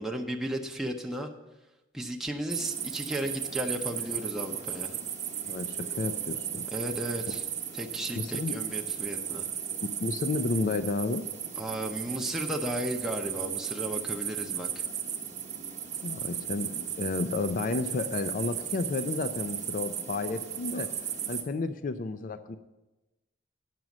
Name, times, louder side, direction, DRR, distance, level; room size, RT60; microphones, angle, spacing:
voice 1, 0.0-1.3 1.9-5.0 6.7-7.4 7.7-9.5 11.6-14.9, right 1 dB, ahead, 0 dB, 0.7 m, -34 dB
sound 1, 2.5-21.4, right 8 dB, 40° right, 1.0 m, -35 dB
voice 2, 5.4-6.7 8.2-8.6 9.8-11.3 16.0-21.0 21.3-22.6, left 3 dB, 45° left, 10 dB, 0.4 m, -32 dB
9.2 x 6.2 x 7.2 m, 1.0 s
head